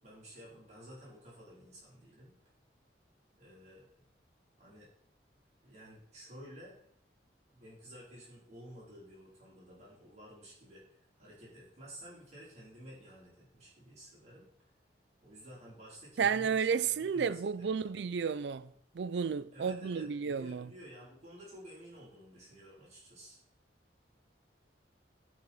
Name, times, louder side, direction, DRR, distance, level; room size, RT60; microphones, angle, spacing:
voice 1, 0.0-2.3 3.4-3.9 4.6-4.9 5.6-6.8 7.5-14.5 15.2-18.3 19.5-23.4, equal, 40° right, 4.7 m, -53 dB
voice 2, 16.2-18.7 18.9-20.7, right 6 dB, 80° right, 0.4 m, -32 dB
12.0 x 5.6 x 4.6 m
head